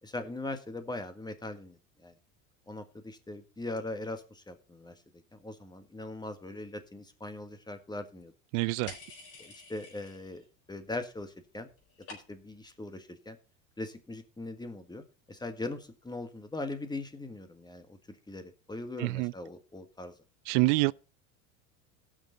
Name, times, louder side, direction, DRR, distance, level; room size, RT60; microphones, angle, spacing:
voice 1, 0.0-2.2 2.7-5.0 5.3-8.3 9.4-11.7 12.1-13.4 13.8-20.1 20.8-20.9, left 2 dB, 10° left, 1.6 m, -40 dB
voice 2, 8.5-8.9 19.0-19.3 20.5-20.9, right 23 dB, 60° right, 0.5 m, -26 dB
sound 1, 8.9-10.5 10.7-11.3 11.5-12.6, left 4 dB, 35° left, 4.2 m, -49 dB
17.0 x 6.4 x 4.0 m
supercardioid pair, 95°, 40 cm